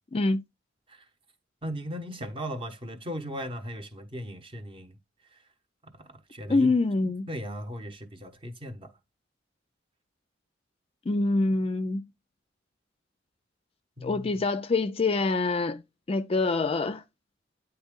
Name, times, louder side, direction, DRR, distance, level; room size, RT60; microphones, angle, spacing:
voice 1, 0.1-0.4 6.5-7.3 11.1-12.0 14.0-15.8 16.1-17.0, left 3 dB, 30° left, 0.4 m, -25 dB
voice 2, 1.6-5.0 5.3-5.4 5.8-6.8 7.0-8.9 14.0-14.4, equal, 30° right, 0.9 m, -38 dB
9.2 x 3.4 x 3.6 m
head